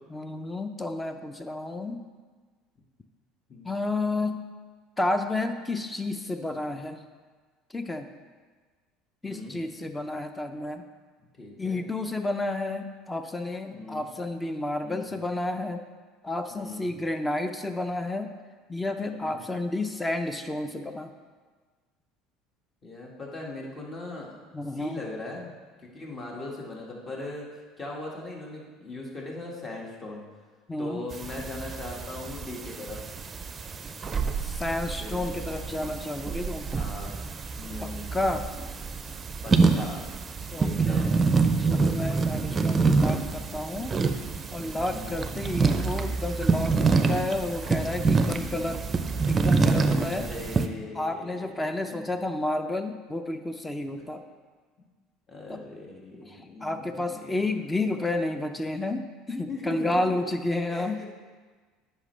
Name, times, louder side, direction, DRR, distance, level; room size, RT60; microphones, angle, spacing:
voice 1, 0.1-2.0 3.6-4.4 5.0-7.0 7.7-8.1 9.2-10.8 11.6-15.8 16.2-18.3 18.7-21.1 24.5-25.0 30.7-31.0 34.4-36.7 37.8-38.5 40.5-41.3 41.6-44.0 44.5-48.8 49.3-50.3 50.9-54.2 55.5-55.6 56.3-61.0, left 2 dB, 15° left, 8 dB, 0.6 m, -31 dB
voice 2, 9.2-9.5 11.4-11.8 13.7-14.1 14.8-15.1 16.5-16.9 19.0-19.4 22.8-24.5 24.7-25.5 25.8-27.5 27.8-30.2 30.8-33.0 35.0-35.4 36.7-37.2 37.6-38.3 39.4-40.0 40.6-41.2 44.6-45.2 46.8-47.1 48.2-48.5 50.1-51.5 51.9-52.1 54.0-54.1 55.3-57.5 59.5-59.9 60.7-61.1, left 2 dB, 30° left, -2 dB, 1.8 m, -39 dB
sound 1, 31.1-50.7, right 4 dB, 30° right, 0.5 m, -27 dB
9.5 x 5.6 x 3.3 m, 1.5 s
hypercardioid pair, 75°, 0 cm